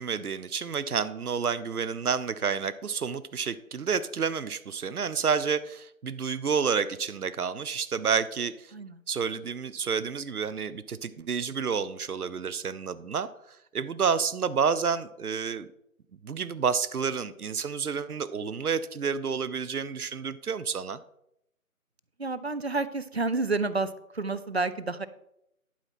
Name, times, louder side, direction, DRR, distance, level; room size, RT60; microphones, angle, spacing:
voice 1, 0.0-8.7 9.1-13.3 13.7-15.7 16.2-21.0, right 6 dB, 85° right, 15 dB, 0.7 m, -29 dB
voice 2, 8.7-9.0 22.2-25.1, right 3 dB, 50° right, 15 dB, 0.5 m, -30 dB
11.5 x 4.3 x 5.8 m, 0.79 s
figure-of-eight pair, 160°, 43 cm